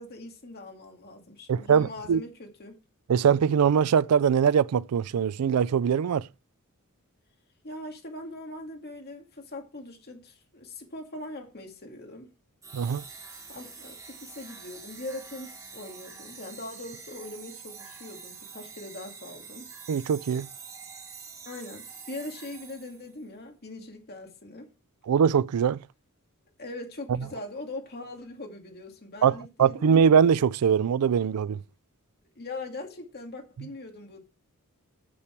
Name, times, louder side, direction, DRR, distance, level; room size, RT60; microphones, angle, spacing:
voice 1, 0.0-2.8 7.6-12.3 13.5-19.7 21.5-24.7 26.6-30.0 32.4-34.2, left 2 dB, 45° left, 2.2 m, -41 dB
voice 2, 1.5-2.2 3.1-6.3 12.7-13.0 19.9-20.5 25.1-25.8 27.1-27.3 29.2-31.6 33.6-33.7, right 7 dB, 85° right, 0.4 m, -22 dB
sound 1, 12.6-23.2, right 5 dB, 15° right, 2.6 m, -46 dB
8.6 x 8.3 x 4.5 m
head